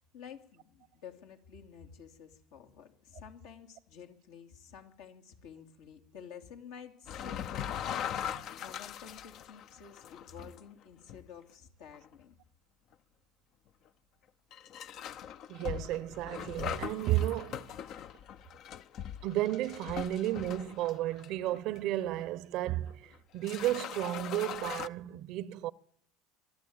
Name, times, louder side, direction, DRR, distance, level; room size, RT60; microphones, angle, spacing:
voice 1, 0.1-8.0 8.6-12.3, left 7 dB, 80° left, 2.9 m, -51 dB
sound 1, 7.1-10.6 11.1-11.2 11.9-12.1 12.9-13.0 14.5-21.8 22.2-22.3 23.1-23.2 23.4-24.9, left 9 dB, 55° left, 0.7 m, -41 dB
voice 2, 15.5-17.7 19.2-25.7, right 14 dB, 65° right, 0.8 m, -33 dB
24.0 x 12.5 x 8.9 m
supercardioid pair, 95°, 0 cm